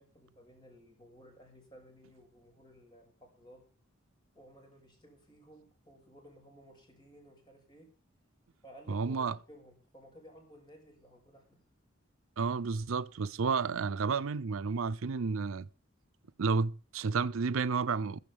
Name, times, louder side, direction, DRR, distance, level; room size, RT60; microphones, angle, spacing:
voice 1, 0.0-3.6 4.3-7.9 8.6-11.6, equal, 20° left, 6.2 m, -56 dB
voice 2, 8.9-9.3 12.4-15.7 16.4-18.2, right 5 dB, 75° right, 0.6 m, -31 dB
15.0 x 15.0 x 3.5 m
head